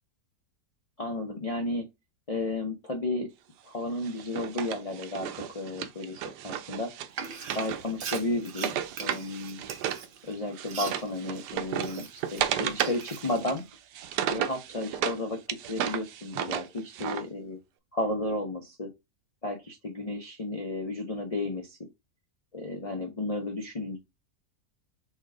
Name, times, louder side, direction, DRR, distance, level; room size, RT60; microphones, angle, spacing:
voice 1, 1.0-1.8 2.3-3.3 3.6-6.9 7.5-9.6 10.2-13.7 14.3-17.6 17.9-18.9 19.4-21.8 22.5-24.0, left 2 dB, 40° left, 0.5 m, -33 dB
Wood, 4.0-10.1 10.3-15.2 15.5-17.2, right 10 dB, 85° right, 1.2 m, -34 dB
Frying (food), 7.1-12.4 12.7-13.6, right 6 dB, 55° right, 0.6 m, -41 dB
4.4 x 2.2 x 4.7 m
omnidirectional pair, 1.7 m